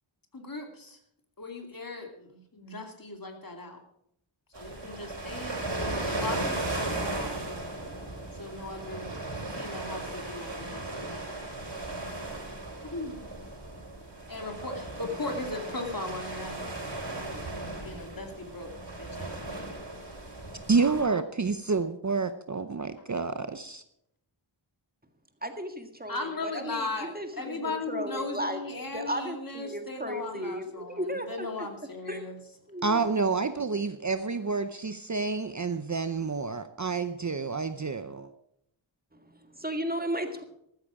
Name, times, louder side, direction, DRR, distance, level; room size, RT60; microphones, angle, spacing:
voice 1, 0.3-1.0 1.4-3.8 4.5-5.8 6.1-7.8 8.3-9.2 9.5-11.5 12.8-13.2 14.3-16.7 17.7-18.7 19.0-19.6 26.1-32.4, left 3 dB, 45° left, 4 dB, 2.6 m, -38 dB
sound 1, 4.5-21.0, right 2 dB, 60° right, 6.8 m, -36 dB
voice 2, 20.7-23.8 32.8-38.3, right 4 dB, 40° right, 10 dB, 0.8 m, -29 dB
voice 3, 25.4-28.6 28.9-31.7 32.1-32.3 32.7-33.0 39.1-40.4, equal, 20° right, 6 dB, 1.9 m, -35 dB
14.0 x 14.0 x 4.9 m, 0.73 s
wide cardioid pair, 100°, 47 cm